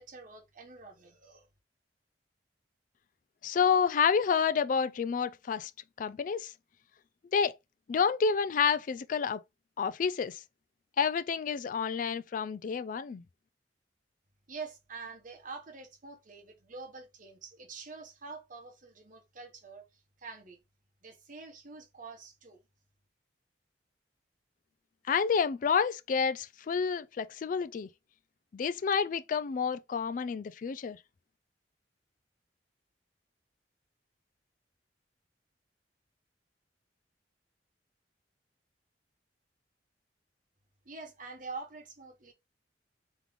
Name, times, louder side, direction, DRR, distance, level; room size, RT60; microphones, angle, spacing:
voice 1, 0.0-1.5 14.5-20.6 21.0-22.6 40.8-42.3, right 4 dB, 45° right, 1.0 m, -46 dB
voice 2, 3.4-5.7 6.0-6.5 7.3-7.6 7.9-9.4 9.8-10.4 11.0-13.2 25.1-27.9 28.5-31.0, left 6 dB, 45° left, 0.3 m, -29 dB
3.7 x 3.1 x 3.4 m
head